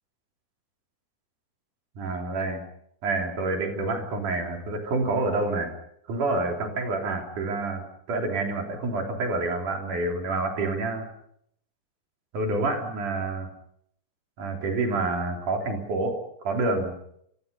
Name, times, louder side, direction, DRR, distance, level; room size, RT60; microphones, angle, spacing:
voice 1, 1.9-2.6 3.0-5.7 6.1-11.1 12.3-13.5 14.4-16.9, right 2 dB, 80° right, 2 dB, 5.2 m, -28 dB
27.5 x 25.5 x 5.5 m, 0.72 s
omnidirectional pair, 3.5 m